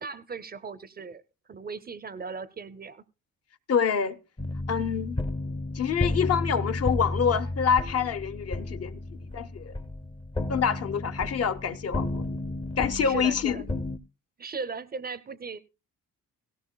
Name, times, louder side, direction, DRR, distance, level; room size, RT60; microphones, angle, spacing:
voice 1, 0.0-3.0 9.1-9.2 13.0-13.7 14.4-15.6, right 5 dB, 30° right, 0.5 m, -38 dB
voice 2, 3.7-4.2 4.7-5.2 5.7-9.0 9.3-9.7 10.5-12.2 12.8-13.6, left 7 dB, 50° left, 0.7 m, -26 dB
sound 1, 4.4-14.0, left 2 dB, 15° left, 0.6 m, -32 dB
17.5 x 17.0 x 2.2 m
cardioid pair, 155°, 33 cm